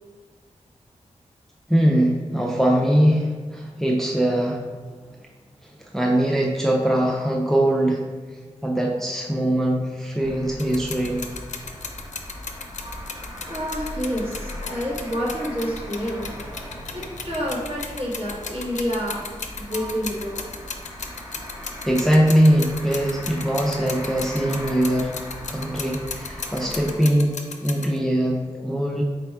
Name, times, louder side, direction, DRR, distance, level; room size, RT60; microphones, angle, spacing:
voice 1, 1.7-4.7 5.6-8.0 8.6-11.2 21.8-25.2 25.5-27.3 27.6-29.0, right 1 dB, 5° left, -1 dB, 0.4 m, -21 dB
sound 1, 10.2-26.9, left 1 dB, 20° right, 1.0 m, -39 dB
sound 2, 10.6-28.0, left 5 dB, 75° left, 0.4 m, -36 dB
voice 2, 12.8-13.1 13.5-16.3 16.9-20.5, equal, 50° right, -6 dB, 1.3 m, -29 dB
4.2 x 2.2 x 4.5 m, 1.4 s
wide cardioid pair, 80°, 12 cm